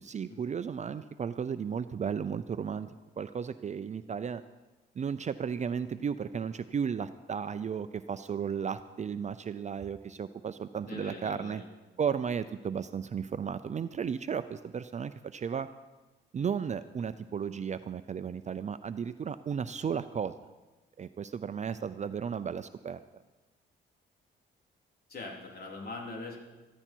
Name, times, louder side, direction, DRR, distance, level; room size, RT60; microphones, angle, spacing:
voice 1, 0.0-4.4 5.0-11.6 12.0-15.7 16.3-20.3 21.0-23.0, right 7 dB, 35° right, 12 dB, 0.5 m, -34 dB
voice 2, 10.8-11.7 25.1-26.4, left 3 dB, 50° left, 0 dB, 3.5 m, -42 dB
15.0 x 14.0 x 4.6 m, 1.2 s
cardioid pair, 90°, 20 cm